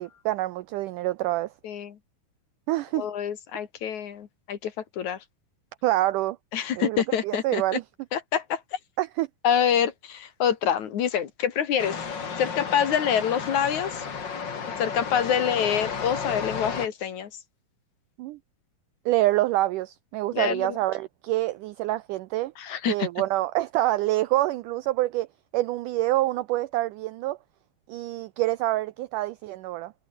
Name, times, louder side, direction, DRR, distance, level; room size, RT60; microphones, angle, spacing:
voice 1, 0.0-1.5 2.7-3.1 5.8-6.4 6.8-7.8 9.0-9.3 18.2-18.4 19.1-22.5 22.9-25.3 25.5-27.4 27.9-29.9, right 16 dB, 85° right, 1.8 m, -26 dB
voice 2, 1.6-1.9 2.9-5.2 6.5-7.6 8.1-8.6 9.4-12.0 12.4-14.1 14.8-17.3 20.3-20.7 22.6-23.1, left 8 dB, 55° left, 2.8 m, -26 dB
sound 1, 11.8-16.9, left 6 dB, 35° left, 2.3 m, -33 dB
omnidirectional pair, 4.3 m